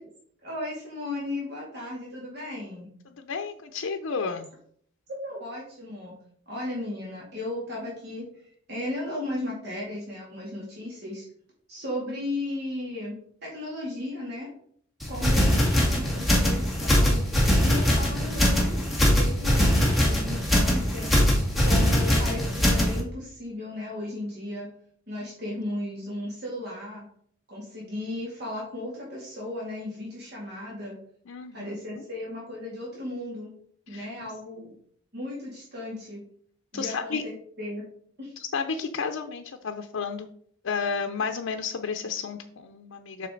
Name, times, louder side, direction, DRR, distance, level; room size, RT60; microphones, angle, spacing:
voice 1, 0.4-2.9 5.1-6.2 6.5-11.3 11.7-14.5 15.1-17.2 17.6-18.8 19.1-21.1 21.6-24.7 25.1-27.1 27.5-30.9 31.5-33.5 33.9-34.7 35.1-36.2 36.7-37.8 38.2-38.3, left 1 dB, 50° right, -5 dB, 2.5 m, -35 dB
voice 2, 3.3-4.5 15.2-15.3 31.3-31.8 33.9-34.3 36.7-37.2 38.4-40.3 40.6-43.3, left 5 dB, 80° left, 5 dB, 0.6 m, -32 dB
sound 1, 15.0-23.0, equal, ahead, 2.0 m, -22 dB
7.6 x 5.8 x 3.9 m, 0.62 s
head